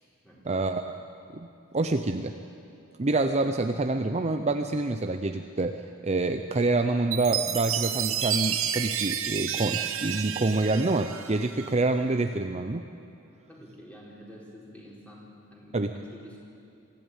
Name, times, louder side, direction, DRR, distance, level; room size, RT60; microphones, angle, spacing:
voice 1, 0.4-1.0 1.3-1.5 1.7-2.4 3.0-12.8 15.7-15.9, right 2 dB, 30° right, 6 dB, 0.7 m, -27 dB
Chime, 7.1-11.7, right 9 dB, 70° right, 1.1 m, -30 dB
voice 2, 13.5-16.4, equal, 5° left, -4 dB, 4.7 m, -48 dB
24.5 x 14.5 x 9.1 m, 2.6 s
head